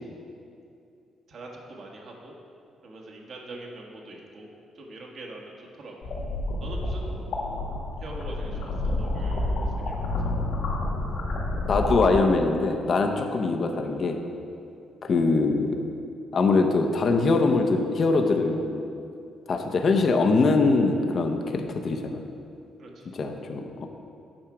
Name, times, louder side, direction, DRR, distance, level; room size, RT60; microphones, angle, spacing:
voice 1, 1.3-2.3 2.8-4.5 4.7-6.1 6.6-10.0 22.8-23.1, right 2 dB, 60° right, 0 dB, 1.4 m, -43 dB
sound 1, 6.0-12.2, left 2 dB, 85° left, 1.8 m, -29 dB
voice 2, 11.7-14.2 15.0-15.8 16.3-18.8 19.5-22.2 23.1-23.9, left 3 dB, 50° left, 4 dB, 0.7 m, -23 dB
8.8 x 5.7 x 4.8 m, 2.6 s
cardioid pair, 90°, 0 cm